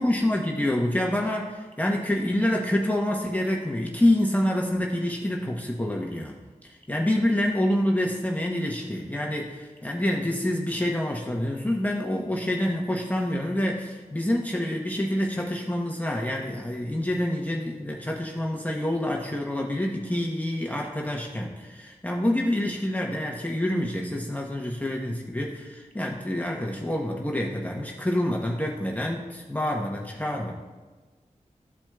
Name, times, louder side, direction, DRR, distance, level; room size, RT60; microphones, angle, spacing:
voice 1, 0.0-6.4 6.6-30.5, left 1 dB, 10° left, -1 dB, 0.8 m, -27 dB
12.5 x 4.4 x 2.2 m, 1.3 s
wide cardioid pair, 50°, 13 cm